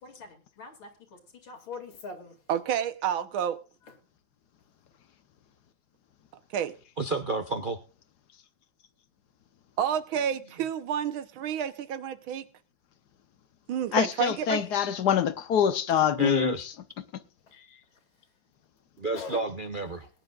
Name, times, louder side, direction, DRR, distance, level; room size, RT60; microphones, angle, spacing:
voice 1, 0.0-2.4 3.9-4.0 17.5-17.6 19.1-19.4 19.8-19.9, left 4 dB, 80° left, 3.3 m, -43 dB
voice 2, 2.5-3.6 6.5-6.8 9.8-12.5 13.7-14.6, right 9 dB, 90° right, 1.8 m, -29 dB
voice 3, 7.0-7.8 16.2-16.7 19.0-20.1, right 2 dB, 50° right, 0.5 m, -30 dB
voice 4, 13.9-16.7, left 9 dB, 65° left, 1.2 m, -25 dB
21.0 x 10.0 x 2.4 m
omnidirectional pair, 2.2 m